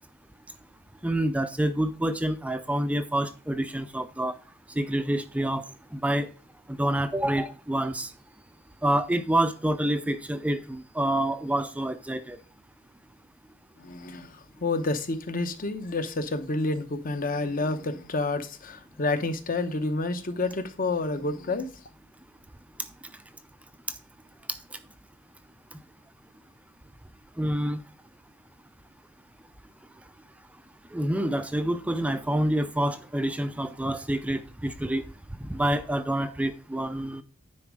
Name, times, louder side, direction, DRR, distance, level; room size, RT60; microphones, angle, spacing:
voice 1, 1.0-4.4 4.8-6.3 6.7-8.1 8.8-12.4 27.4-27.8 30.9-35.1 35.4-37.2, right 1 dB, 5° right, 0.4 m, -27 dB
voice 2, 13.8-21.8, left 2 dB, 40° left, 0.8 m, -29 dB
9.8 x 4.1 x 4.7 m
head